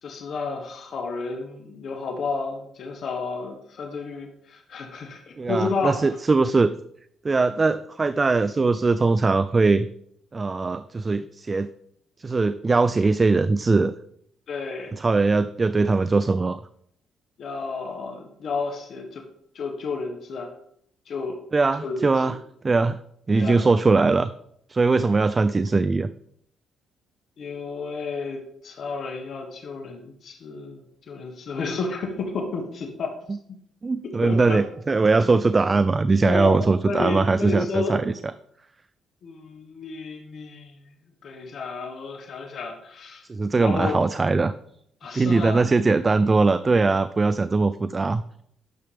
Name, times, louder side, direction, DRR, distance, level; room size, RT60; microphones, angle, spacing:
voice 1, 0.0-6.0 14.5-15.0 17.4-19.2 19.5-20.5 21.1-21.4 21.8-22.4 23.4-23.6 27.4-33.4 34.2-34.6 36.2-38.1 39.2-40.7 41.2-43.2 43.6-44.0 45.0-45.6, left 4 dB, 60° left, 3 dB, 1.5 m, -31 dB
voice 2, 5.4-6.8 7.2-9.9 10.3-11.7 12.2-13.9 14.9-16.6 21.5-22.3 22.6-23.0 23.3-24.3 24.7-26.1 33.8-38.1 43.3-44.5 45.1-48.2, right 3 dB, 30° right, 14 dB, 0.3 m, -21 dB
10.0 x 6.9 x 3.5 m, 0.71 s
cardioid pair, 90°, 0 cm